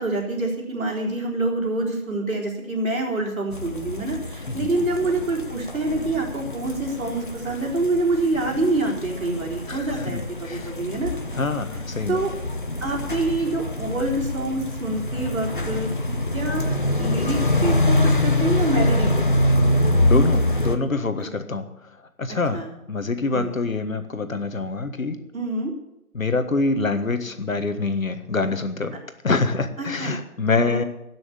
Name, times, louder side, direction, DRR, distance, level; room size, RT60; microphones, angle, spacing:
voice 1, 0.0-11.1 12.1-12.3 12.8-15.9 16.3-16.6 17.0-19.2 22.3-22.7 23.3-23.5 25.3-25.7 29.8-30.2 30.7-30.9, right 2 dB, 65° right, -1 dB, 4.5 m, -26 dB
sound 1, 3.5-20.8, left 1 dB, 35° left, 0.8 m, -25 dB
voice 2, 9.7-10.7 11.4-12.2 20.0-21.7 22.2-22.6 22.9-25.2 26.1-28.9 29.2-30.8, left 3 dB, 65° left, 8 dB, 1.5 m, -25 dB
16.0 x 6.3 x 8.9 m, 0.87 s
figure-of-eight pair, 170°, 44 cm